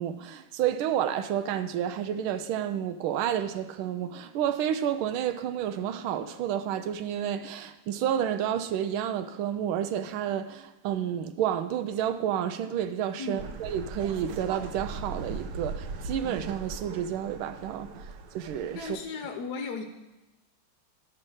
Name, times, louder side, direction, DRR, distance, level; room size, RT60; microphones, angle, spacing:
voice 1, 0.0-19.0, right 10 dB, 85° right, 1.4 m, -30 dB
sound 1, 13.4-19.0, right 3 dB, 70° right, 1.3 m, -39 dB
voice 2, 18.7-19.8, left 4 dB, 60° left, 1.2 m, -35 dB
10.5 x 5.8 x 6.3 m
omnidirectional pair, 2.2 m